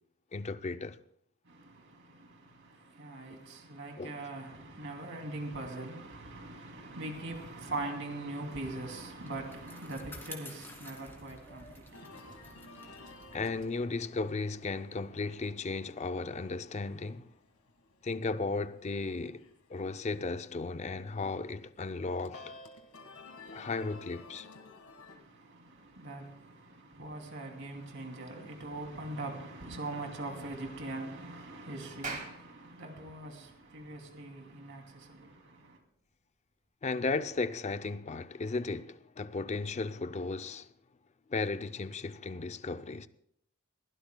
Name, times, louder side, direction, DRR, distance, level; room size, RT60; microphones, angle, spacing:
voice 1, 0.3-1.0 3.3-3.4 4.0-4.1 13.3-17.3 18.0-19.4 19.7-22.6 23.5-24.5 36.8-40.7 41.3-43.1, left 3 dB, 30° left, 0.5 m, -35 dB
voice 2, 1.4-13.2 25.1-35.8, right 2 dB, 60° right, 2.8 m, -42 dB
Bicycle, 8.5-15.2, left 2 dB, 10° left, 2.2 m, -52 dB
sound 1, 11.9-25.2, left 2 dB, 85° left, 1.7 m, -54 dB
Clapping, 32.0-36.7, right 3 dB, 35° right, 2.4 m, -46 dB
22.0 x 16.5 x 2.2 m
head